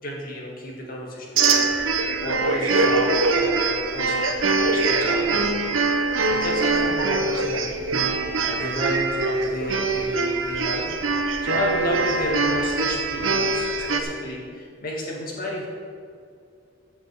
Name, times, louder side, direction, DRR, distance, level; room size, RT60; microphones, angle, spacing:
voice 1, 0.0-5.5 6.3-7.9 8.4-10.9 11.4-15.7, left 1 dB, 45° left, -2 dB, 2.4 m, -31 dB
sound 1, 1.4-14.0, right 3 dB, 90° right, 1.0 m, -23 dB
15.0 x 6.8 x 4.9 m, 2.3 s
head